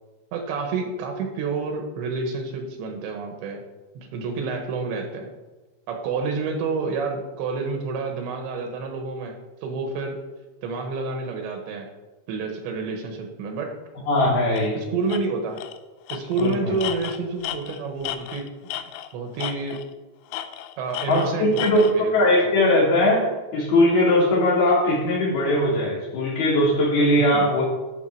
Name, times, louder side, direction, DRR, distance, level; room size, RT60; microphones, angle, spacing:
voice 1, 0.3-3.6 3.9-5.3 5.9-9.3 9.6-10.2 10.6-11.9 12.3-13.7 14.7-15.6 16.1-18.5 19.1-19.8 20.8-22.5 27.2-27.5, right 4 dB, 75° right, 3 dB, 3.2 m, -29 dB
voice 2, 14.1-14.8 16.4-16.7 21.1-27.6, left 1 dB, 55° left, -4 dB, 4.1 m, -20 dB
Tools, 14.6-14.7 15.1-15.2 15.6-15.8 16.1-19.1 19.4-19.9 20.3-21.9, left 12 dB, 90° left, 2.4 m, -33 dB
12.5 x 7.2 x 4.6 m, 1.2 s
omnidirectional pair, 5.6 m